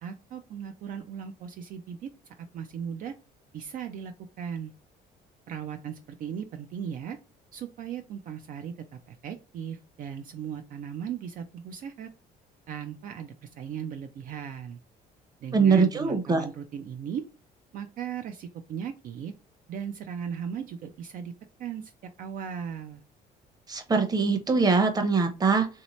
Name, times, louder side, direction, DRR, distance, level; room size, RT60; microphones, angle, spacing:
voice 1, 0.0-3.1 3.5-4.7 5.5-7.2 7.5-8.7 9.1-12.1 12.7-14.8 15.4-17.2 17.7-19.3 19.7-21.3 21.6-21.9 22.2-23.0, right 8 dB, 55° right, 6 dB, 0.4 m, -37 dB
voice 2, 15.5-16.4 23.7-25.7, right 4 dB, 25° right, 5 dB, 0.8 m, -22 dB
3.1 x 2.8 x 3.0 m, 0.32 s
cardioid pair, 110°, 17 cm